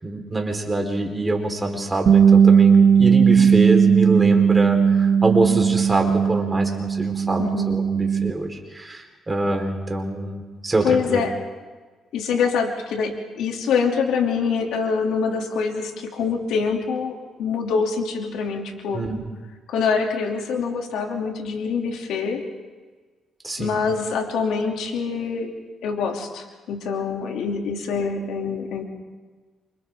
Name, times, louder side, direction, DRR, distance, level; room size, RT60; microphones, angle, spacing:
voice 1, 0.0-11.2 18.9-19.2 23.4-23.7, right 2 dB, 20° right, 2 dB, 4.3 m, -25 dB
Bass guitar, 2.1-8.3, right 7 dB, 50° right, 0.9 m, -17 dB
voice 2, 7.4-7.7 10.8-11.3 12.1-19.0 19.7-22.5 23.6-25.5 25.8-28.8, left 5 dB, 85° left, 2 dB, 2.9 m, -25 dB
28.5 x 27.0 x 3.8 m, 1.4 s
cardioid pair, 90°, 0 cm